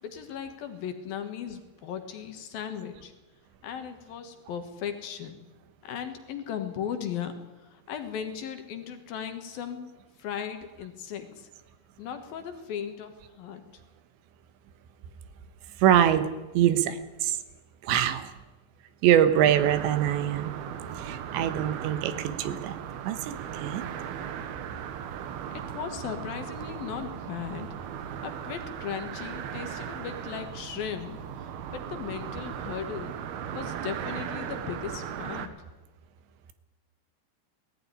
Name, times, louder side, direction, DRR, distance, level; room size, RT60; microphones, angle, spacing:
voice 1, 0.0-3.1 3.6-5.4 5.8-7.4 7.7-11.5 12.0-13.6 25.5-27.7 28.2-33.2 33.5-35.5, left 8 dB, 65° left, 7 dB, 3.0 m, -37 dB
voice 2, 15.8-16.3 16.5-17.4 17.8-18.3 19.0-20.5 21.0-22.8 23.1-23.8, right 10 dB, 85° right, 11 dB, 3.4 m, -24 dB
sound 1, 19.1-35.5, right 8 dB, 70° right, 2.9 m, -37 dB
18.5 x 14.5 x 10.0 m, 1.1 s
omnidirectional pair, 5.0 m